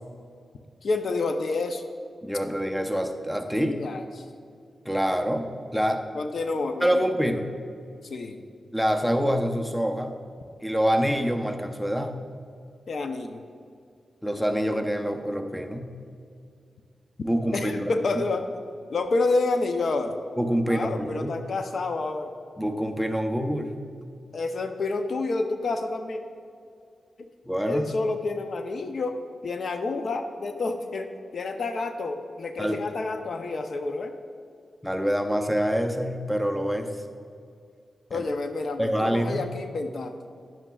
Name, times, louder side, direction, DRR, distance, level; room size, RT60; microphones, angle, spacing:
voice 1, 0.8-1.8 3.5-4.2 6.1-7.1 8.0-8.4 12.9-13.4 17.5-18.4 18.9-20.2 20.7-22.3 24.3-26.2 27.6-29.2 29.4-31.1 31.3-34.1 38.1-40.1, left 3 dB, 65° left, 7 dB, 0.5 m, -29 dB
voice 2, 2.2-3.8 4.8-6.0 6.8-7.5 8.7-10.2 10.6-12.2 14.2-15.9 17.2-17.9 20.4-21.3 22.6-23.8 27.5-27.8 32.6-32.8 34.8-36.9 38.1-38.2 38.8-39.5, equal, 5° left, 5 dB, 0.7 m, -26 dB
10.5 x 8.8 x 2.3 m, 2.3 s
cardioid pair, 55°, 0 cm